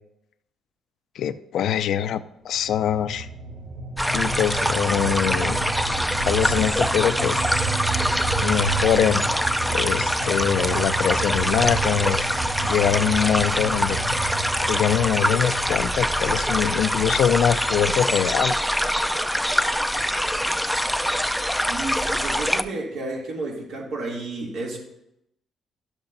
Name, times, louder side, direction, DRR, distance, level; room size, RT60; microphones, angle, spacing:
voice 1, 1.2-3.3 4.1-5.6 6.2-7.4 8.4-9.2 9.7-12.3 12.7-14.0 14.7-18.6, left 9 dB, 75° left, 14 dB, 0.4 m, -23 dB
sound 1, 2.6-18.0, right 4 dB, 50° right, 1.0 m, -31 dB
sound 2, 4.0-22.6, equal, ahead, 0.4 m, -24 dB
voice 2, 21.5-24.8, right 2 dB, 80° right, -2 dB, 2.6 m, -32 dB
12.0 x 7.3 x 2.6 m, 0.81 s
cardioid pair, 90°, 0 cm